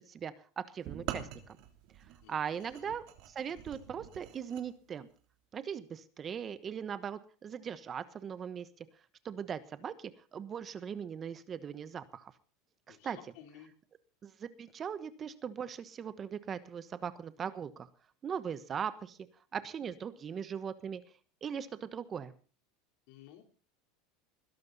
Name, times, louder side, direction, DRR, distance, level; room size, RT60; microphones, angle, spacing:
voice 1, 0.0-1.6 2.3-3.0 3.3-5.1 5.5-8.9 9.2-12.3 12.9-13.2 14.2-17.9 18.2-19.2 19.5-21.0 21.4-22.3, right 7 dB, 30° right, 14 dB, 1.1 m, -39 dB
sound 1, 0.8-4.7, right 11 dB, 60° right, 3.1 m, -44 dB
voice 2, 2.2-2.9 12.9-13.7 23.1-23.5, left 11 dB, 65° left, 5 dB, 3.8 m, -55 dB
21.0 x 11.5 x 4.1 m, 0.38 s
supercardioid pair, 135°, 0 cm